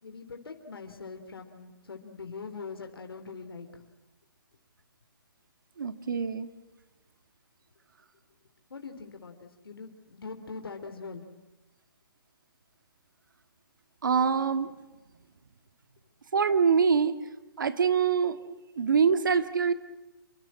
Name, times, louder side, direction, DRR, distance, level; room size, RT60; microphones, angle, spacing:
voice 1, 0.0-3.9 8.7-11.2, left 4 dB, 90° left, 6 dB, 3.4 m, -42 dB
voice 2, 5.8-6.5 14.0-14.7 16.3-17.2 17.6-19.7, right 6 dB, 60° right, 11 dB, 1.9 m, -25 dB
28.0 x 24.0 x 7.5 m, 1.1 s
hypercardioid pair, 180°, 12 cm